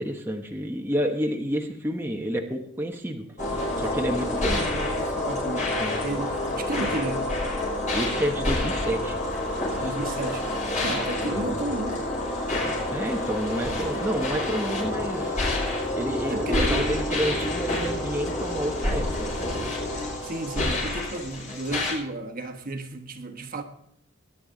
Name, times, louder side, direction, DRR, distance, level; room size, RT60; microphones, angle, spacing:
voice 1, 0.0-3.3 3.8-4.6 5.8-6.0 7.9-9.2 9.7-9.9 10.7-10.8 12.9-15.4 15.9-19.4, equal, 10° right, 1.0 m, -29 dB
sound 1, 3.4-21.9, left 1 dB, 40° left, 6.3 m, -28 dB
voice 2, 4.3-7.3 9.8-10.5 10.8-12.1 16.3-17.0 20.2-23.6, right 2 dB, 45° right, 1.2 m, -33 dB
21.0 x 9.9 x 3.8 m
head